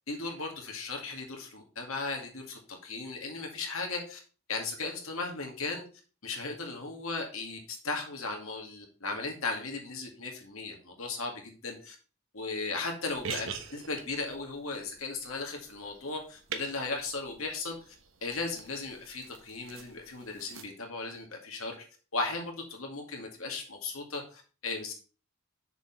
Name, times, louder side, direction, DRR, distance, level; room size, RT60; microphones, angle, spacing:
voice 1, 0.1-4.2 4.5-5.8 6.2-12.0 12.3-17.9 18.2-21.8 22.1-24.9, left 3 dB, 70° left, 2 dB, 2.1 m, -36 dB
sound 1, 13.1-20.6, right 6 dB, 60° right, 1.0 m, -45 dB
6.7 x 4.7 x 5.4 m, 0.37 s
head